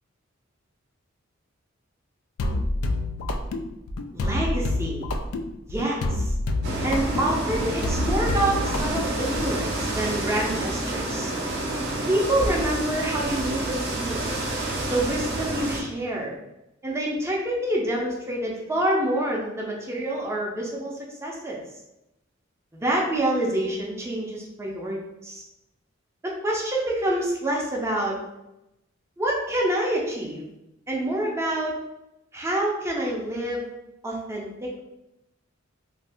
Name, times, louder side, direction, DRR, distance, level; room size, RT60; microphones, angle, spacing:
sound 1, 2.4-9.6, left 2 dB, 85° left, 0.3 m, -28 dB
voice 1, 4.1-5.1 5.7-6.3 6.8-11.3 12.1-14.3 14.9-16.3 16.8-21.6 22.8-25.4 26.2-28.2 29.2-30.5 30.9-31.7 32.3-33.7 34.0-34.8, right 1 dB, 15° right, -3 dB, 0.5 m, -27 dB
sound 2, 6.6-15.8, right 1 dB, 55° right, 0.8 m, -28 dB
2.6 x 2.3 x 3.4 m, 0.90 s
head